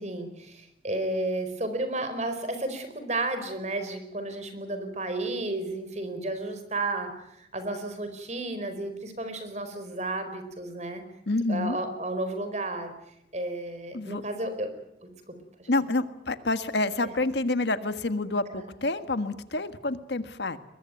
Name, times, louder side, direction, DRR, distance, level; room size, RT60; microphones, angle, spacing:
voice 1, 0.0-11.0 11.5-12.9 13.3-14.7 15.0-15.1 15.6-15.7 18.5-18.6, right 2 dB, 40° right, 9 dB, 4.7 m, -32 dB
voice 2, 11.3-11.8 13.9-14.2 15.7-20.6, left 2 dB, 70° left, 11 dB, 1.6 m, -28 dB
22.5 x 22.0 x 9.3 m, 0.82 s
head